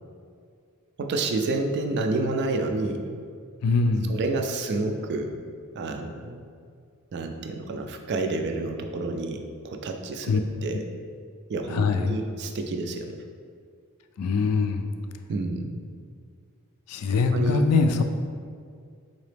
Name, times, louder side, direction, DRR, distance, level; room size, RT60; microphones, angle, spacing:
voice 1, 1.0-3.2 4.0-5.3 5.7-6.4 7.1-10.8 11.5-13.2 15.3-15.8 17.1-17.7, right 2 dB, 50° right, 5 dB, 0.3 m, -29 dB
voice 2, 3.6-4.2 10.3-10.4 10.7-10.8 11.7-12.2 14.2-14.8 16.9-18.0, left 4 dB, 90° left, 6 dB, 0.3 m, -23 dB
3.9 x 2.9 x 3.3 m, 2.2 s
head